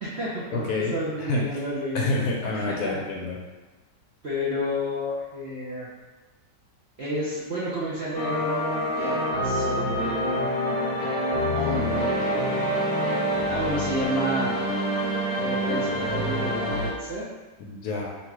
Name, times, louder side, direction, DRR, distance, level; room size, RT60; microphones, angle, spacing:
voice 1, 0.0-2.1 2.5-3.0 4.2-5.9 7.0-10.8 11.5-12.9 13.5-14.7 15.4-17.3, equal, 65° right, -8 dB, 0.6 m, -31 dB
voice 2, 0.5-1.4 1.9-3.4 17.6-18.1, left 2 dB, 70° left, -1 dB, 1.0 m, -28 dB
sound 1, 8.1-16.9, equal, 45° left, 0.9 m, -26 dB
3.0 x 2.9 x 4.5 m, 1.2 s
omnidirectional pair, 1.9 m